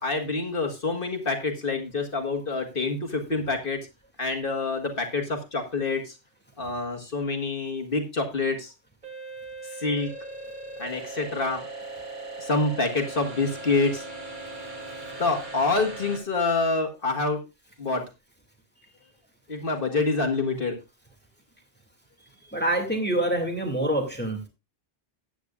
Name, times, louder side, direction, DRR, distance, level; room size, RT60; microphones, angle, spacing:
voice 1, 0.0-3.8 4.2-6.2 6.6-8.7 9.7-10.1 10.8-11.6 12.4-14.0 15.2-17.4 17.8-18.0 19.5-20.8, left 3 dB, 60° left, 3 dB, 1.9 m, -27 dB
sound 1, 9.0-16.2, right 3 dB, 50° right, 3.1 m, -39 dB
voice 2, 22.5-24.4, right 1 dB, 10° left, 2 dB, 2.3 m, -26 dB
14.5 x 9.7 x 2.4 m, 0.26 s
omnidirectional pair, 1.0 m